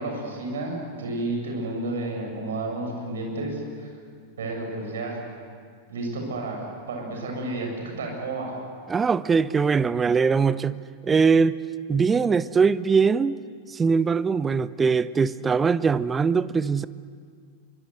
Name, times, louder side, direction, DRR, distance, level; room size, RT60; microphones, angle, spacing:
voice 1, 0.0-3.9 4.4-5.2 5.9-8.6, right 2 dB, 65° right, 1 dB, 7.3 m, -31 dB
voice 2, 8.9-10.8 11.0-11.6 11.9-13.4 13.7-16.9, right 5 dB, 15° right, 16 dB, 0.7 m, -21 dB
25.5 x 24.5 x 8.0 m, 2.1 s
figure-of-eight pair, 90°, 0 cm